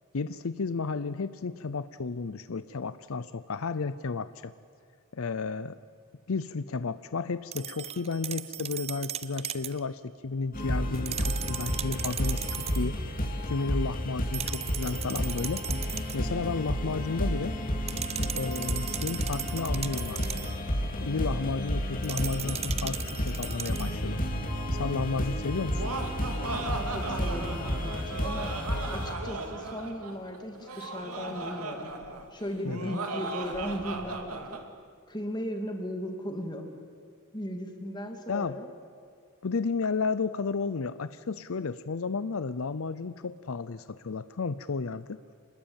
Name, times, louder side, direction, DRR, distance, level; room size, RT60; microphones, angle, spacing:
voice 1, 0.1-4.5 5.1-5.8 6.3-13.0 13.5-15.7 16.1-17.6 18.3-20.2 21.0-24.2 24.7-25.8 32.6-33.0 38.3-38.6 39.4-45.2, left 4 dB, 70° left, 14 dB, 0.6 m, -32 dB
sound 1, 7.5-9.8 10.9-12.9 14.3-16.3 17.9-20.6 22.0-24.0, right 10 dB, 25° right, 0.6 m, -37 dB
sound 2, 10.5-29.1, equal, 40° left, 2.6 m, -32 dB
Laughter, 25.5-34.6, right 2 dB, 80° right, 2.6 m, -37 dB
voice 2, 26.9-28.5 28.9-31.9 32.3-34.6 35.1-36.7 37.3-38.7, equal, 20° left, 4 dB, 2.6 m, -37 dB
26.0 x 20.5 x 8.9 m, 2.3 s
head